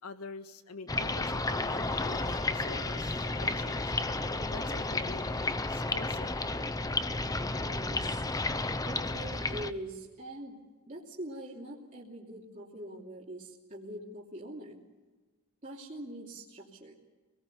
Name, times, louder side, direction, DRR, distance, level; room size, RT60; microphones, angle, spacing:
voice 1, 0.0-3.8 4.4-5.2 5.7-6.3, left 3 dB, 90° left, 8 dB, 1.7 m, -45 dB
sound 1, 0.9-9.7, left 2 dB, 15° left, 0.8 m, -32 dB
Bowed string instrument, 1.6-7.8, left 6 dB, 55° left, 3.3 m, -49 dB
voice 2, 7.5-8.2 8.9-10.6 10.9-14.8 15.6-17.0, right 1 dB, 35° right, -5 dB, 2.9 m, -43 dB
27.0 x 19.5 x 6.9 m, 1.3 s
head